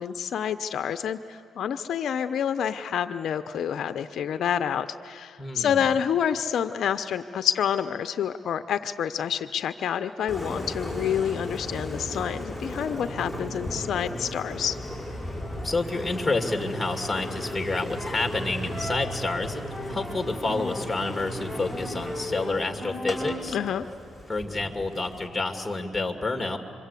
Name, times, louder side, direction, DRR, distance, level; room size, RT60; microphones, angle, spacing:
voice 1, 0.0-14.8 23.5-23.9, left 8 dB, 65° left, 10 dB, 0.7 m, -28 dB
voice 2, 5.4-5.9 15.6-23.6 24.3-26.6, left 3 dB, 10° left, 5 dB, 2.3 m, -29 dB
Engine, 10.3-25.3, left 1 dB, 10° right, 6.0 m, -35 dB
27.0 x 23.5 x 8.3 m, 2.3 s
cardioid pair, 90°, 0 cm